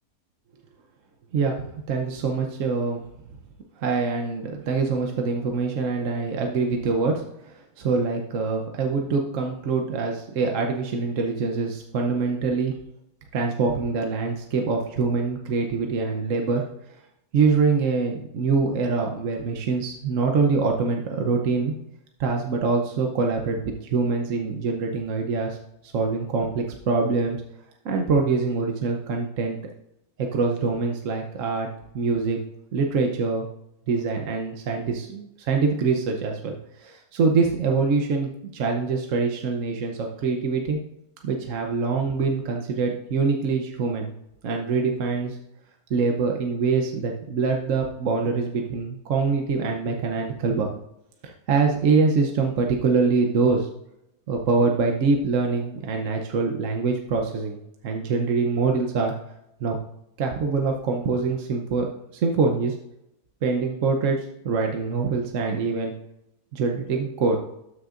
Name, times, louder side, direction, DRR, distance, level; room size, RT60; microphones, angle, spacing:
voice 1, 1.3-3.0 3.8-12.7 13.3-16.6 17.3-21.7 22.2-25.6 25.8-27.4 27.8-29.6 30.2-31.7 31.9-32.4 32.7-33.5 33.9-40.8 41.2-44.1 44.4-45.4 45.9-50.7 51.2-53.7 54.3-57.6 57.8-59.1 59.6-59.8 60.2-61.9 62.1-62.8 63.4-65.9 66.5-67.4, right 4 dB, 60° right, 2 dB, 1.1 m, -24 dB
13.0 x 6.3 x 2.5 m, 0.83 s
omnidirectional pair, 1.6 m